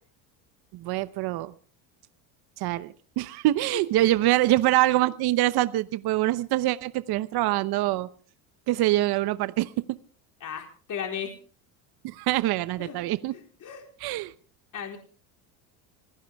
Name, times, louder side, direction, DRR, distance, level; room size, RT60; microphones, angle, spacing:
voice 1, 0.8-1.5 2.6-8.1 8.7-9.7 12.0-13.3 14.0-14.3, right 16 dB, 50° right, 14 dB, 0.9 m, -24 dB
voice 2, 3.7-4.1 10.4-11.3 12.8-13.9 14.7-15.0, left 8 dB, 40° left, 3 dB, 4.2 m, -36 dB
25.5 x 16.0 x 3.5 m, 0.39 s
supercardioid pair, 115°, 48 cm